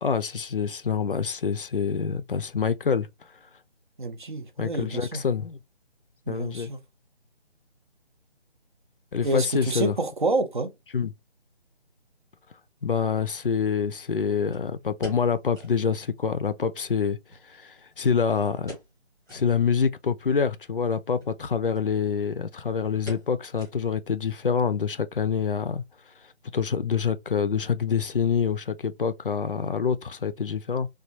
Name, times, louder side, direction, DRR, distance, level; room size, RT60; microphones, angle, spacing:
voice 1, 0.0-3.1 4.6-5.6 6.3-6.7 9.1-9.9 10.9-11.1 12.8-17.2 17.5-18.7 19.3-25.8 26.5-30.9, left 6 dB, 55° left, 0.4 m, -26 dB
voice 2, 4.0-5.2 6.3-6.8 9.2-10.7, right 2 dB, 50° right, 0.5 m, -28 dB
sound 1, 14.5-15.9 16.2-16.3 16.6-16.7 17.3-18.2 18.6-19.0 19.2-19.5 20.0-20.1 21.1-21.4 21.7-21.9 22.2-22.5 23.1-24.1 24.4-24.5 25.1-25.4 25.7-25.8, left 1 dB, 5° right, 1.0 m, -43 dB
3.3 x 2.3 x 2.7 m
figure-of-eight pair, 155°, 33 cm